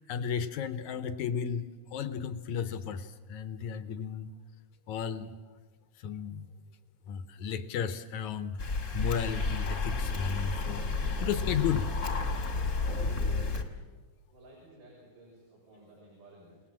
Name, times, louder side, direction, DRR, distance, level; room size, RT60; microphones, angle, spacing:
voice 1, 0.0-1.7 1.9-4.3 4.9-5.3 6.0-6.4 7.1-8.6 8.9-10.9 11.2-11.9, left 7 dB, 70° left, 11 dB, 2.0 m, -33 dB
sound 1, 8.6-13.6, left 3 dB, 30° left, 1.5 m, -31 dB
voice 2, 14.3-16.6, right 1 dB, 70° right, -4 dB, 8.0 m, -55 dB
30.0 x 19.0 x 7.4 m, 1.3 s
omnidirectional pair, 4.0 m